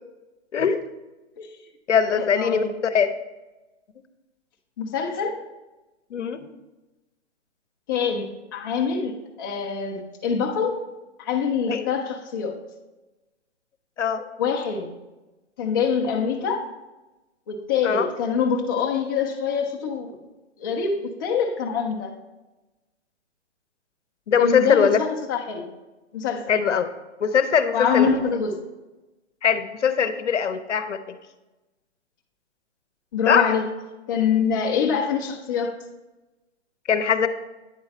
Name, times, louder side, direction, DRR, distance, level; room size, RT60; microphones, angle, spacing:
voice 1, 0.5-0.8 1.9-3.1 6.1-6.4 11.7-11.9 14.0-14.3 17.8-18.1 24.3-25.0 26.5-26.9 27.2-28.1 29.4-31.2 33.3-33.6 36.9-37.3, left 7 dB, 85° left, 9 dB, 0.7 m, -21 dB
voice 2, 2.1-2.7 4.8-5.3 7.9-10.8 11.2-12.6 14.4-14.9 15.6-16.6 17.5-20.1 20.6-22.1 24.4-25.7 26.1-26.5 27.7-28.5 33.1-33.6 34.1-35.8, left 6 dB, 20° left, 0 dB, 0.4 m, -25 dB
8.8 x 3.9 x 4.2 m, 1.1 s
hypercardioid pair, 140°, 35 cm